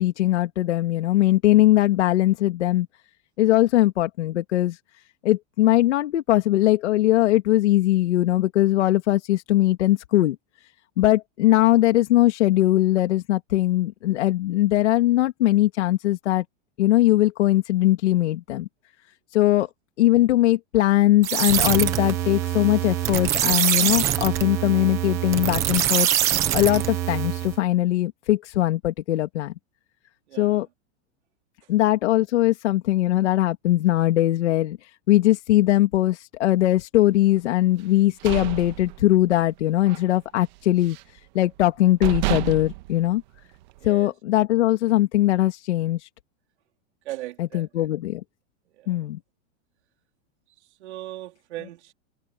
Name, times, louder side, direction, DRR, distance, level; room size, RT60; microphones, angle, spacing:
voice 1, 0.0-2.9 3.4-4.8 5.2-10.4 11.0-16.4 16.8-18.7 19.3-19.7 20.0-26.2 26.5-29.5 30.3-30.7 31.7-41.0 41.3-43.2 43.8-46.1 47.4-48.2 48.9-49.2, left 15 dB, 80° left, 2.7 m, -20 dB
sound 1, 21.2-27.6, right 12 dB, 10° right, 0.3 m, -24 dB
voice 2, 30.3-30.6 43.8-44.1 47.1-47.7 48.8-48.9 50.8-51.9, right 16 dB, 70° right, 3.7 m, -38 dB
sound 2, 37.9-39.5 39.8-40.1 40.4-41.2 41.6-41.7 42.0-43.8, right 20 dB, 40° right, 1.1 m, -30 dB
supercardioid pair, 175°, 35 cm